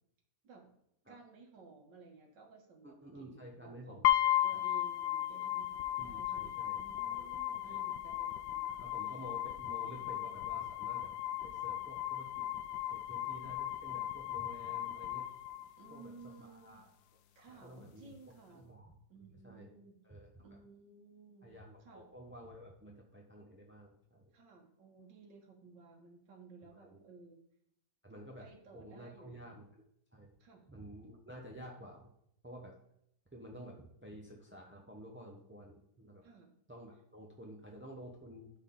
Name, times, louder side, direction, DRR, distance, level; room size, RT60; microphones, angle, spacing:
voice 1, 1.1-4.1 4.4-9.1 10.0-10.1 14.6-14.8 15.8-16.8 17.4-18.7 19.1-20.0 20.4-21.5 21.8-22.0 24.3-27.4 28.4-29.6 30.4-30.6 36.2-36.5, right 4 dB, 85° right, 0 dB, 2.0 m, -56 dB
voice 2, 2.8-4.6 6.0-7.3 7.6-7.8 8.8-11.1 11.4-12.5 12.9-15.3 15.9-16.1 16.4-16.9 17.5-18.1 18.5-18.9 19.4-19.7 20.0-20.3 21.4-24.3 26.7-27.0 28.0-29.7 30.1-30.3 30.7-32.1 32.4-32.8 33.3-36.2 36.7-38.5, equal, 10° right, 0 dB, 0.5 m, -51 dB
sound 1, 4.0-16.1, left 13 dB, 75° left, 1.1 m, -36 dB
12.0 x 4.1 x 3.8 m, 0.74 s
omnidirectional pair, 1.9 m